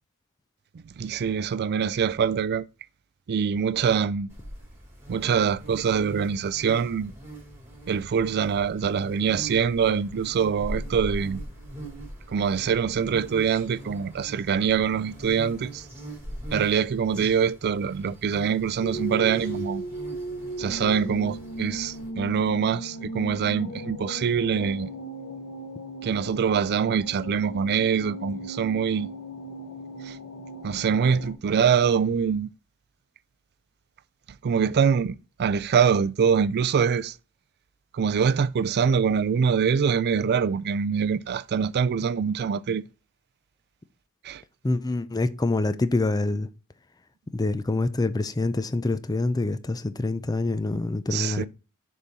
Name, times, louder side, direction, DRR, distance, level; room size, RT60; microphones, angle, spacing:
voice 1, 1.0-2.6 3.3-4.3 5.1-7.1 7.9-11.4 12.3-15.9 16.5-19.8 20.6-24.9 26.0-29.1 30.0-30.2 30.6-32.5 34.4-37.2 37.9-42.8 44.2-44.4 51.1-51.4, right 6 dB, 50° right, 0.4 m, -24 dB
sound 1, 4.3-22.1, right 1 dB, 10° right, 2.7 m, -41 dB
sound 2, 18.8-31.3, right 1 dB, 65° left, 0.9 m, -37 dB
voice 2, 44.6-46.5 47.3-51.5, left 2 dB, 15° left, 0.4 m, -26 dB
6.8 x 3.7 x 4.2 m
head